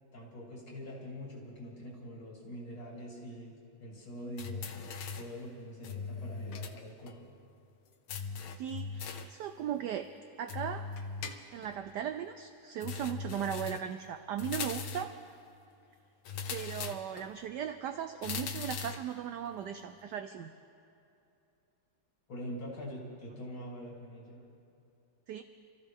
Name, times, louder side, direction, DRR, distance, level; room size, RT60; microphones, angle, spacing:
voice 1, 0.1-4.9 5.1-7.3 22.3-24.4, equal, 65° left, -4 dB, 4.0 m, -44 dB
sound 1, 4.4-5.4 5.8-6.8 7.1-7.2 8.1-9.4 10.5-11.7 12.8-13.9 14.4-15.2 16.2-17.3 18.2-19.1, left 5 dB, 85° left, 1.7 m, -39 dB
voice 2, 8.6-10.1 10.4-10.9 11.5-15.1 16.5-20.5 25.3-25.4, right 9 dB, 75° right, 9 dB, 1.0 m, -37 dB
27.5 x 14.5 x 3.6 m, 2.7 s
omnidirectional pair, 2.3 m